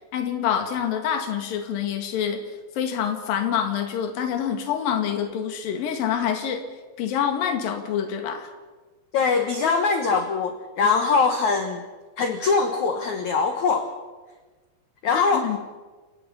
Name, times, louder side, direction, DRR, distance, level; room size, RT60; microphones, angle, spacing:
voice 1, 0.1-2.4 2.7-6.6 7.0-8.5 15.1-15.6, left 8 dB, 55° left, 6 dB, 3.3 m, -26 dB
voice 2, 9.1-11.8 12.2-13.9 15.0-15.5, left 4 dB, 90° left, 6 dB, 1.6 m, -22 dB
29.0 x 17.0 x 5.6 m, 1.3 s
omnidirectional pair, 5.4 m